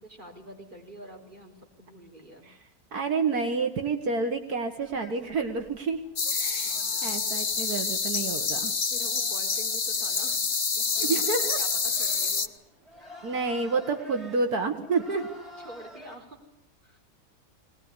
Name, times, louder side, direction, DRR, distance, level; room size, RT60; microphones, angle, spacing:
voice 1, 0.0-2.5 6.6-7.5 8.9-12.5 15.6-16.5 16.8-17.0, right 1 dB, 30° right, 1 dB, 4.7 m, -47 dB
voice 2, 2.9-8.7 11.0-11.6 13.2-15.3, right 4 dB, 80° right, 6 dB, 2.1 m, -29 dB
sound 1, 4.8-16.2, left 1 dB, ahead, 4.9 m, -50 dB
sound 2, 6.2-12.5, left 5 dB, 35° left, 1.1 m, -27 dB
21.0 x 20.0 x 9.8 m, 0.77 s
omnidirectional pair, 1.6 m